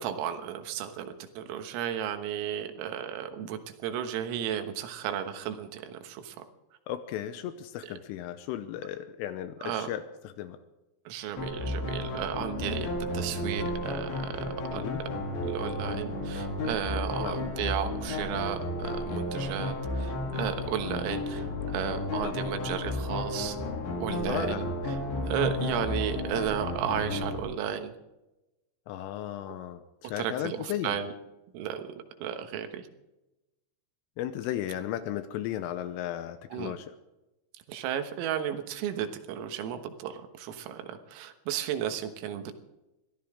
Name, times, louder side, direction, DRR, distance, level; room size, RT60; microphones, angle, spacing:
voice 1, 0.0-6.4 9.6-9.9 11.1-14.3 14.7-14.9 15.4-23.6 24.0-25.0 25.3-27.9 29.5-29.6 30.2-31.1 31.5-31.9 32.2-32.9 36.5-36.8 37.7-42.5, right 9 dB, 80° right, 7 dB, 3.9 m, -34 dB
voice 2, 6.9-10.6 14.7-15.0 17.2-17.4 22.2-22.3 24.2-24.7 28.9-31.0 34.2-36.9, left 11 dB, 85° left, 10 dB, 3.3 m, -35 dB
sound 1, 11.4-27.4, left 2 dB, 60° left, 5.1 m, -33 dB
23.5 x 15.0 x 3.7 m, 0.97 s
omnidirectional pair, 6.0 m